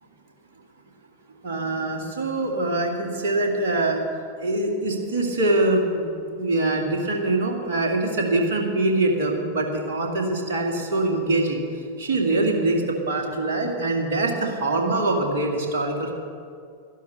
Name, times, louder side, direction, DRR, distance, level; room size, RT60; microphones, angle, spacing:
voice 1, 1.4-4.0 4.4-6.1 6.4-11.6 12.0-16.1, right 2 dB, 55° right, 1 dB, 2.3 m, -23 dB
12.5 x 11.0 x 6.7 m, 2.3 s
figure-of-eight pair, 90°, 0 cm